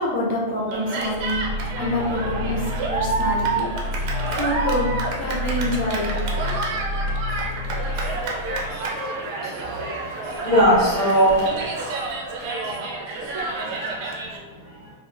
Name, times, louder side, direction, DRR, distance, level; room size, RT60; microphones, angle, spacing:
voice 1, 0.0-1.4 1.7-3.7 4.4-4.9 5.2-6.3, left 1 dB, 40° left, -3 dB, 0.8 m, -26 dB
Cheering, 0.7-14.4, right 3 dB, 35° right, 0.6 m, -29 dB
sound 1, 1.0-8.8, left 2 dB, 75° left, 1.2 m, -29 dB
voice 2, 4.1-4.7 7.0-7.2 7.8-8.6 8.9-9.2 10.4-11.5 13.5-13.7, equal, 20° left, -9 dB, 1.3 m, -21 dB
2.8 x 2.4 x 3.7 m, 1.4 s
supercardioid pair, 170°, 0 cm